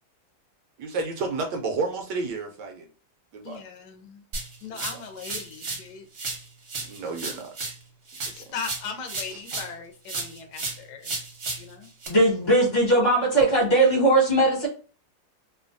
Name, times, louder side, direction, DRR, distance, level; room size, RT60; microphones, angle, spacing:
voice 1, 0.8-2.9 3.3-3.6 4.7-5.0 6.8-7.5 8.2-8.3 9.3-9.6, right 3 dB, 75° right, 1.1 m, -31 dB
voice 2, 3.4-4.2 4.6-6.1 8.3-11.1 11.6-11.9, left 6 dB, 70° left, 1.1 m, -38 dB
sound 1, 4.3-5.9 6.1-9.8 10.1-12.1, right 3 dB, 50° right, 0.8 m, -34 dB
voice 3, 12.1-14.7, right 1 dB, 45° left, 1.3 m, -19 dB
3.0 x 2.2 x 2.5 m
omnidirectional pair, 2.0 m